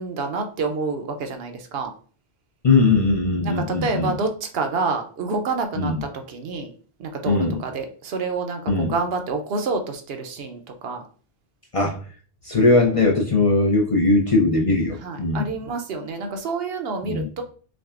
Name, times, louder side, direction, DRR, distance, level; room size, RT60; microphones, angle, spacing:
voice 1, 0.0-1.9 3.4-6.7 7.0-11.0 15.0-17.4, right 4 dB, 70° right, 6 dB, 0.8 m, -28 dB
voice 2, 2.6-4.1 5.7-6.0 7.3-7.6 8.7-8.9 11.7-12.0 12.4-15.5 17.0-17.3, left 3 dB, 40° left, -1 dB, 0.6 m, -19 dB
5.9 x 2.2 x 2.4 m, 0.42 s
omnidirectional pair, 1.1 m